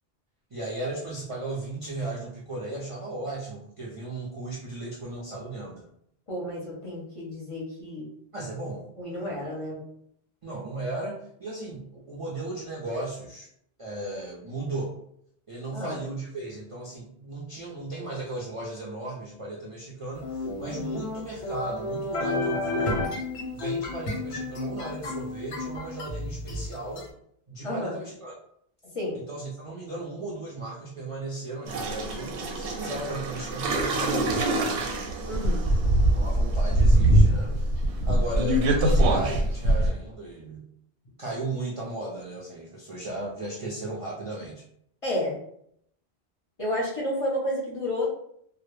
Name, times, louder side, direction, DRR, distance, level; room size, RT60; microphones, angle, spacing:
voice 1, 0.5-5.9 8.3-8.9 9.2-9.4 10.4-13.5 13.8-14.9 15.5-23.0 23.5-27.1 27.5-28.3 29.1-34.9 36.1-37.7 38.1-40.6 41.2-44.6, right 2 dB, 50° right, -6 dB, 0.4 m, -35 dB
voice 2, 6.3-8.1 9.0-9.8 15.7-16.0 27.6-28.0 28.9-29.2 35.3-35.6 45.0-45.4 46.6-48.2, left 1 dB, 40° left, -4 dB, 0.5 m, -31 dB
sound 1, 20.2-27.1, left 3 dB, 90° left, 0.9 m, -32 dB
sound 2, 31.7-39.9, right 1 dB, 90° right, 0.9 m, -23 dB
2.1 x 2.0 x 3.0 m, 0.70 s
omnidirectional pair, 1.1 m